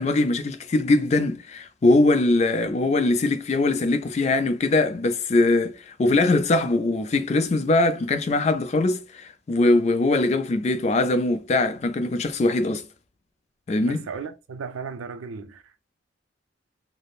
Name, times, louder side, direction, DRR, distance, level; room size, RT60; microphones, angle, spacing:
voice 1, 0.0-12.8 13.7-14.0, left 2 dB, 35° left, 0.3 m, -22 dB
voice 2, 13.8-15.9, right 5 dB, 90° right, 0.5 m, -36 dB
3.3 x 2.0 x 2.3 m
head